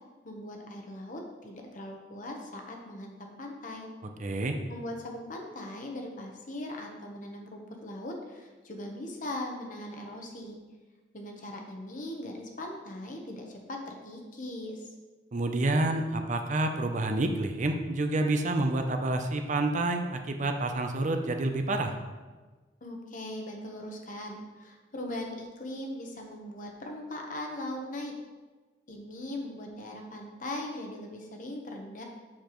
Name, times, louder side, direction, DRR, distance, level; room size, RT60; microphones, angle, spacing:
voice 1, 0.2-3.9 4.7-10.6 11.1-14.9 22.8-28.1 28.9-32.0, left 1 dB, 45° left, 2 dB, 1.0 m, -40 dB
voice 2, 4.2-4.6 15.3-21.9, right 2 dB, 40° right, 5 dB, 0.5 m, -28 dB
7.5 x 6.7 x 3.1 m, 1.3 s
head